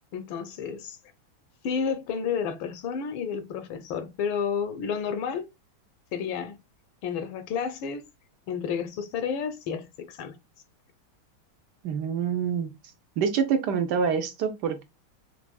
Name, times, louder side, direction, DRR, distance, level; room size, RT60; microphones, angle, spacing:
voice 1, 0.1-1.0 1.6-5.5 6.1-6.6 7.0-8.1 8.5-10.4, left 6 dB, 75° left, 1.4 m, -31 dB
voice 2, 11.8-12.7 13.2-14.8, right 6 dB, 65° right, 1.1 m, -26 dB
6.2 x 3.5 x 2.2 m
omnidirectional pair, 2.3 m